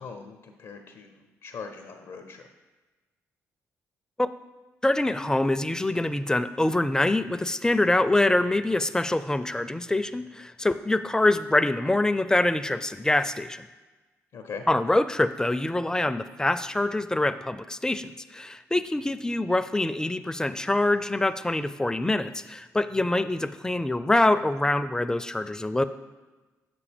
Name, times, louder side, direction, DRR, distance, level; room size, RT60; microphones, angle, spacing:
voice 1, 0.0-2.4 14.3-14.6 22.9-23.1, left 5 dB, 65° left, 3 dB, 0.6 m, -41 dB
voice 2, 4.8-13.6 14.7-25.8, left 2 dB, 10° left, 12 dB, 0.4 m, -25 dB
6.8 x 6.0 x 3.4 m, 1.2 s
hypercardioid pair, 40°, 7 cm